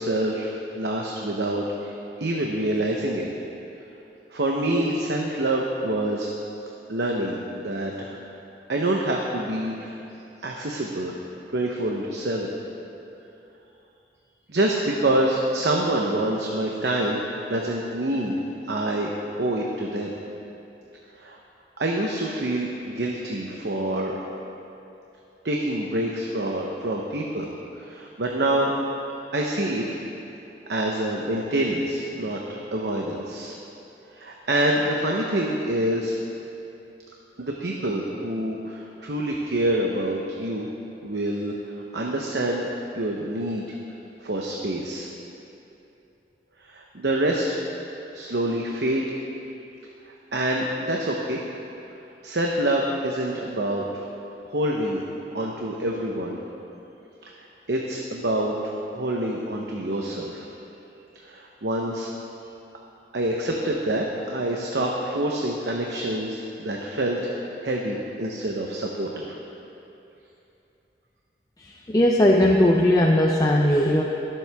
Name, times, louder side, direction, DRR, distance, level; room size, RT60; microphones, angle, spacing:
voice 1, 0.0-3.3 4.3-6.3 6.9-8.2 8.7-10.0 10.4-11.2 11.5-12.5 14.5-18.3 18.7-20.2 21.1-21.4 21.8-24.2 25.4-27.5 27.8-28.8 29.3-30.0 30.7-33.5 34.1-36.1 37.4-40.7 41.0-42.7 42.9-43.8 44.2-45.1 46.6-47.5 48.1-49.0 50.1-51.4 52.2-54.0 54.4-55.0 55.3-56.4 57.2-60.5 61.2-62.1 63.1-69.4, right 1 dB, 75° right, -1 dB, 0.9 m, -26 dB
voice 2, 71.9-74.0, left 1 dB, 20° left, -1 dB, 0.5 m, -18 dB
22.0 x 7.7 x 3.5 m, 2.9 s
head